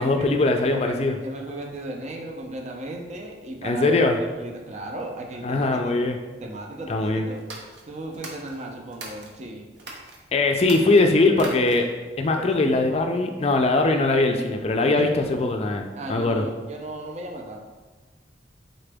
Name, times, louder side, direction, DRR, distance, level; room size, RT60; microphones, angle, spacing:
voice 1, 0.0-1.1 3.6-4.2 5.4-6.2 6.9-7.3 10.3-11.9 12.2-16.4, left 2 dB, 35° left, 4 dB, 0.4 m, -21 dB
voice 2, 0.7-5.9 6.4-7.4 7.9-9.7 12.4-12.7 14.8-15.2 15.9-17.6, right 1 dB, 40° right, 2 dB, 0.5 m, -36 dB
sound 1, 7.4-9.3 9.8-10.2 10.6-12.0, right 2 dB, 80° right, 0.8 m, -40 dB
4.1 x 3.8 x 3.4 m, 1.2 s
head